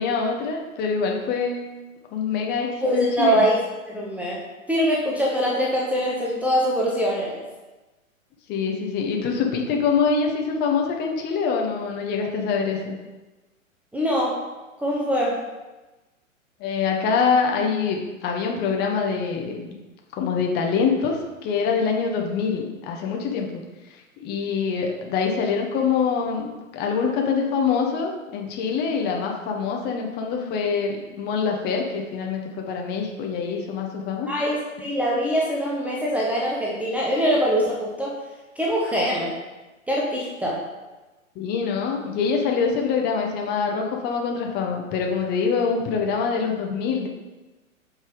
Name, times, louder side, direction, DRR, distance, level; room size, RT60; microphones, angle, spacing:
voice 1, 0.0-1.6 2.1-3.4 8.5-12.9 16.6-19.7 20.1-23.5 24.2-34.3 41.3-47.1, left 5 dB, 25° left, 1 dB, 1.3 m, -25 dB
voice 2, 2.8-3.6 3.9-4.4 4.7-7.4 13.9-14.4 14.8-15.4 34.3-38.1 38.6-39.3 39.9-40.6, equal, 5° right, -4 dB, 1.0 m, -23 dB
8.7 x 5.3 x 5.3 m, 1.1 s
figure-of-eight pair, 115°, 42 cm